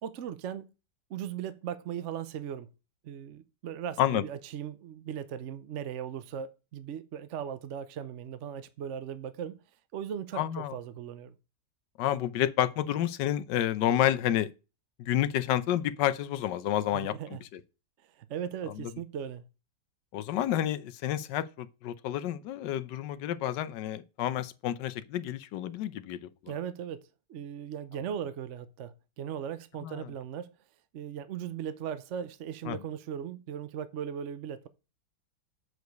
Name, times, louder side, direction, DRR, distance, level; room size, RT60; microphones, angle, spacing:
voice 1, 0.0-0.7 1.1-2.7 3.0-9.6 9.9-11.4 16.9-17.4 18.2-19.4 26.5-30.5 30.9-34.7, right 9 dB, 65° right, 0.7 m, -38 dB
voice 2, 10.3-10.7 12.0-14.5 15.0-17.6 18.7-18.9 20.1-26.5 29.8-30.1 32.7-32.8, left 12 dB, 75° left, 1.3 m, -30 dB
8.0 x 4.8 x 5.2 m
omnidirectional pair, 1.9 m